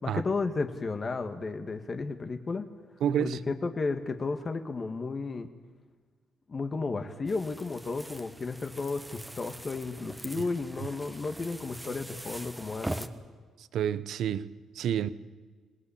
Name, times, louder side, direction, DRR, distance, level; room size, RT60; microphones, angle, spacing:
voice 1, 0.0-2.7 3.2-5.5 6.5-13.1, left 3 dB, 35° left, 1.8 m, -33 dB
voice 2, 3.0-3.4 10.4-10.5 13.6-15.1, right 9 dB, 75° right, 1.0 m, -29 dB
sound 1, 7.3-13.1, right 1 dB, 5° right, 1.5 m, -42 dB
25.0 x 19.5 x 8.7 m
cardioid pair, 90°, 0 cm